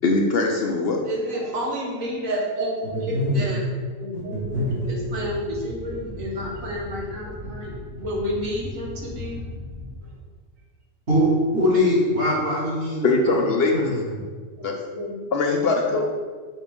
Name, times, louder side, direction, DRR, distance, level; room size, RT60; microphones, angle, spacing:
voice 1, 0.0-1.0 13.0-13.9 14.6-14.8 15.3-16.0, left 3 dB, 60° left, 1 dB, 0.7 m, -21 dB
voice 2, 1.0-3.6 4.0-9.4 14.6-15.3 15.9-16.0, equal, 90° right, -2 dB, 1.7 m, -30 dB
voice 3, 2.8-3.4 4.1-4.8 11.1-13.5 13.7-14.1, left 1 dB, 50° right, -6 dB, 2.1 m, -23 dB
sound 1, 4.3-10.0, left 1 dB, 30° right, 0.9 m, -37 dB
5.5 x 4.9 x 3.5 m, 1.5 s
omnidirectional pair, 1.4 m